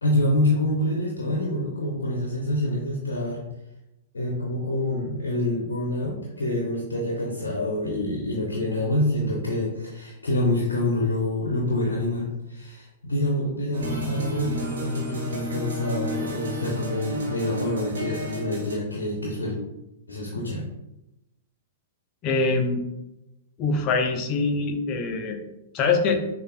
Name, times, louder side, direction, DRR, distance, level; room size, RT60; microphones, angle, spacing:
voice 1, 0.0-3.4 4.1-19.6 20.1-20.6, left 1 dB, 75° left, -2 dB, 0.7 m, -26 dB
sound 1, 13.7-18.8, right 1 dB, 65° right, 1.2 m, -32 dB
voice 2, 22.2-22.8 23.6-25.4 25.7-26.2, left 4 dB, 35° left, 4 dB, 0.6 m, -23 dB
6.4 x 2.5 x 2.2 m, 0.93 s
figure-of-eight pair, 105°, 0 cm